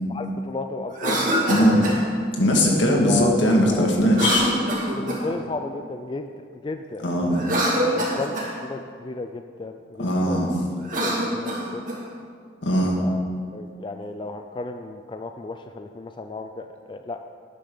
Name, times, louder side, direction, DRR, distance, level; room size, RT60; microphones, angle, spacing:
voice 1, 0.1-1.9 3.1-3.4 3.7-3.9 4.9-7.1 7.8-10.5 11.0-11.8 13.0-13.2 13.5-17.2, left 2 dB, 25° left, 7 dB, 0.3 m, -34 dB
Cough, 0.9-2.0 4.1-5.4 7.3-8.5 10.8-12.0, right 1 dB, 45° right, 2.1 m, -25 dB
voice 2, 1.5-1.8 2.4-4.5 7.0-7.4 10.0-10.5 12.6-13.0, equal, 80° left, 0 dB, 1.9 m, -19 dB
12.0 x 10.5 x 3.9 m, 2.1 s
head